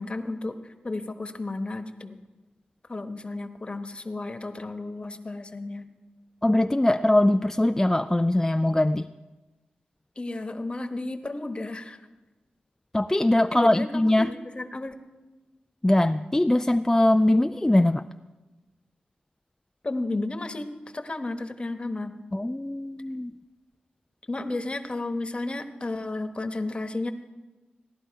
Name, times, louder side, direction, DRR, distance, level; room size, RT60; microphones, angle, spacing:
voice 1, 0.0-2.2 2.9-5.8 10.2-12.0 13.5-15.0 19.8-22.1 24.3-27.1, left 2 dB, 35° left, 8 dB, 1.1 m, -33 dB
voice 2, 6.4-9.1 12.9-14.3 15.8-18.0 22.3-23.3, left 1 dB, 15° left, 8 dB, 0.3 m, -21 dB
17.0 x 11.0 x 4.6 m, 1.2 s
cardioid pair, 60°, 3 cm